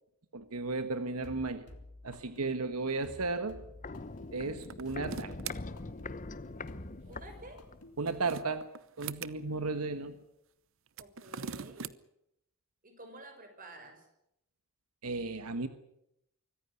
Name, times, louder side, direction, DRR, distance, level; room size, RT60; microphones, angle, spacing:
voice 1, 0.3-1.7 2.0-3.6 4.3-5.3 8.0-8.7 9.0-10.2 15.0-15.7, right 3 dB, 90° right, 10 dB, 1.4 m, -34 dB
sound 1, 1.2-8.4, left 1 dB, 85° left, 3.5 m, -52 dB
Walk footsteps, 3.3-8.0 8.2-8.3, left 3 dB, 35° left, 0.8 m, -43 dB
sound 2, 4.6-5.6 7.8-9.3 10.9-11.9, right 6 dB, 60° right, 0.9 m, -42 dB
voice 2, 7.1-7.7 9.5-9.7 11.0-11.9 12.8-14.1, right 1 dB, 40° right, 6 dB, 6.2 m, -51 dB
24.5 x 15.0 x 9.9 m, 0.80 s
head